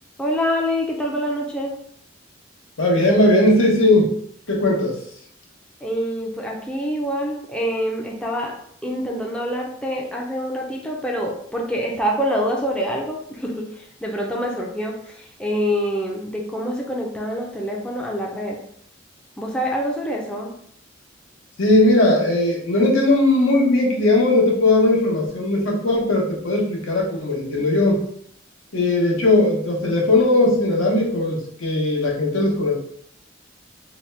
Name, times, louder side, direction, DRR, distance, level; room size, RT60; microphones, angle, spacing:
voice 1, 0.2-1.7 5.8-8.5 8.8-18.6 19.4-20.5, equal, 5° left, -2 dB, 0.4 m, -26 dB
voice 2, 2.8-4.1 4.5-5.0 21.6-28.0 28.7-32.8, left 2 dB, 85° left, -2 dB, 0.8 m, -18 dB
2.8 x 2.1 x 3.2 m, 0.67 s
head